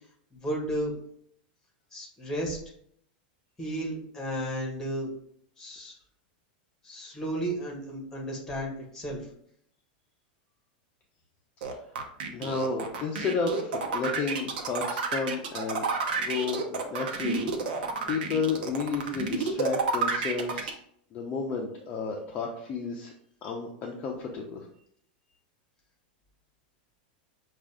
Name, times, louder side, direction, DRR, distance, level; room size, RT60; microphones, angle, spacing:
voice 1, 0.3-0.9 1.9-2.6 3.6-5.1 5.6-6.0 6.8-9.2, right 1 dB, 10° left, -1 dB, 1.5 m, -33 dB
sound 1, 11.6-20.7, right 4 dB, 75° right, 0.8 m, -30 dB
voice 2, 12.3-15.8 16.2-20.8 21.1-23.1 23.4-24.7, left 4 dB, 30° left, 0 dB, 0.6 m, -32 dB
6.1 x 2.4 x 3.5 m, 0.67 s
supercardioid pair, 140°, 5 cm